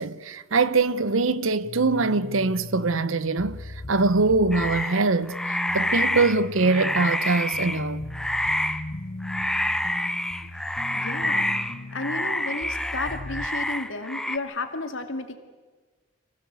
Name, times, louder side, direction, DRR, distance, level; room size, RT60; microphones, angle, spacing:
voice 1, 0.0-8.0, right 3 dB, 80° right, 0.9 m, -23 dB
sound 1, 1.6-13.5, left 2 dB, 40° left, 0.9 m, -38 dB
sound 2, 4.5-7.8 8.1-8.9 9.2-14.4, left 1 dB, 5° left, 0.7 m, -28 dB
voice 2, 10.9-11.5 11.9-15.4, left 3 dB, 75° left, 2.3 m, -32 dB
26.0 x 16.5 x 8.2 m
head